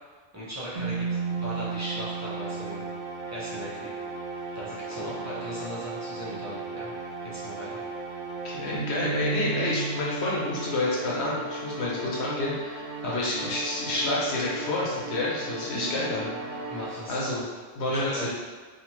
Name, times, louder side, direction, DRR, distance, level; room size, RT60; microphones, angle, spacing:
voice 1, 0.3-2.8 3.3-3.9 4.5-6.9 7.2-7.8 8.1-8.2 13.0-13.5 16.7-17.2 17.9-18.3, equal, 20° right, -9 dB, 0.5 m, -38 dB
sound 1, 0.8-17.5, right 4 dB, 90° right, 0.9 m, -35 dB
voice 2, 8.4-12.9 13.1-16.3 17.1-17.4 17.7-18.3, left 2 dB, 70° left, -5 dB, 0.9 m, -29 dB
2.8 x 2.2 x 3.0 m, 1.4 s
omnidirectional pair, 1.2 m